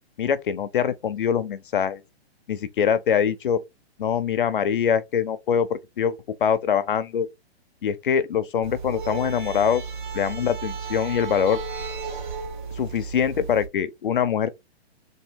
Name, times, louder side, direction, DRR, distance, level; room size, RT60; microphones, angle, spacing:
voice 1, 0.2-2.0 2.5-3.6 4.0-6.1 6.4-7.3 7.8-9.8 10.1-11.6 12.8-14.5, left 8 dB, 50° left, 0.5 m, -23 dB
sound 1, 8.6-13.7, right 5 dB, 45° right, 1.2 m, -33 dB
3.6 x 2.7 x 4.4 m
hypercardioid pair, 175°, 33 cm